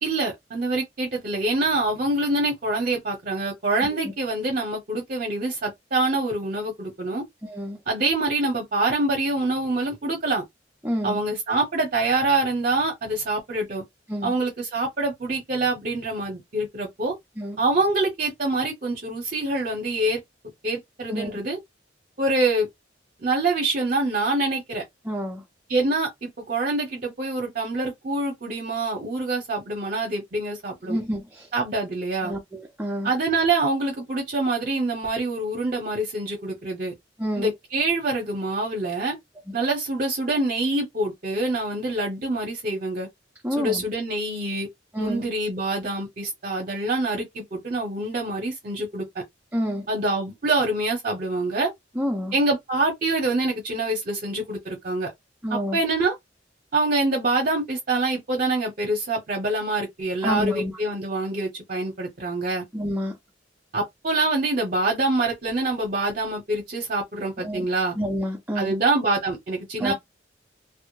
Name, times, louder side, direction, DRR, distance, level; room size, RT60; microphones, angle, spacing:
voice 1, 0.0-7.2 7.9-10.4 11.0-13.8 14.2-17.1 17.6-20.2 20.6-21.6 22.2-22.7 23.2-24.8 25.7-31.0 31.5-32.3 33.0-36.9 37.4-39.2 39.5-43.1 43.6-44.7 45.0-49.2 49.9-51.7 52.3-55.1 55.5-56.1 56.7-62.6 63.7-68.0 68.5-69.9, right 2 dB, 50° right, 0.7 m, -25 dB
voice 2, 7.4-7.8 10.8-11.2 14.1-14.3 17.4-17.6 21.1-21.3 25.1-25.4 30.9-31.5 32.2-33.1 37.2-37.5 43.4-43.8 44.9-45.2 49.5-49.9 52.0-52.3 55.4-55.8 60.2-60.7 62.7-63.1 67.4-67.7 68.0-68.7 69.8-69.9, equal, 10° right, 0.4 m, -28 dB
2.2 x 2.0 x 3.0 m
head